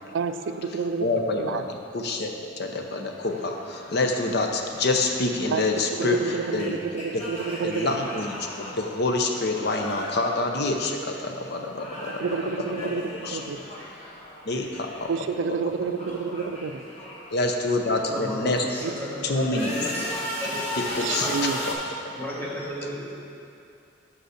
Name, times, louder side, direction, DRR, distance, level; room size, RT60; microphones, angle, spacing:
voice 1, 0.0-1.0 1.4-1.6 5.5-5.6 6.0-8.2 12.1-13.6 15.1-16.8 18.8-18.9 19.2-19.3 21.0-21.6, right 5 dB, 80° right, 9 dB, 0.4 m, -29 dB
voice 2, 1.0-6.8 7.1-7.2 7.6-12.9 13.2-13.4 14.5-15.1 15.5-15.6 16.4-16.5 17.3-18.7 19.2-19.7 20.5-21.8 22.8-22.9, left 2 dB, 60° left, 3 dB, 0.7 m, -27 dB
sound 1, 3.2-11.2 11.5-15.3 15.5-18.2 18.7-21.7, left 1 dB, 35° left, 1.4 m, -37 dB
voice 3, 18.1-20.8 21.1-21.3 22.2-23.1, equal, 10° left, -6 dB, 1.3 m, -34 dB
5.6 x 5.3 x 6.4 m, 2.6 s
head